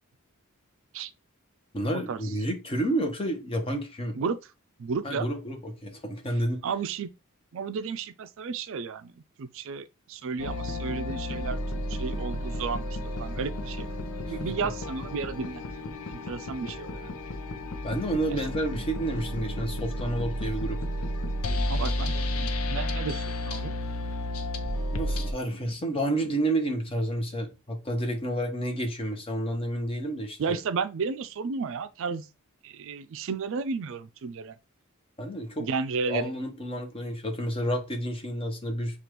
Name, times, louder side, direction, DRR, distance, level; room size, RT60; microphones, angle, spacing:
voice 1, 1.7-4.2 5.0-6.7 14.3-14.5 17.8-20.8 24.9-30.6 35.2-35.7 36.1-39.0, right 1 dB, 25° left, 0.9 m, -30 dB
voice 2, 4.8-5.3 6.6-7.1 7.5-9.1 9.4-11.6 11.9-13.9 14.3-15.6 16.1-17.1 18.3-18.4 21.7-23.7 30.4-32.3 32.6-34.5 35.6-36.3, right 5 dB, 60° right, 0.4 m, -33 dB
sound 1, 10.4-25.3, left 1 dB, 90° left, 0.7 m, -32 dB
6.7 x 2.4 x 3.0 m
head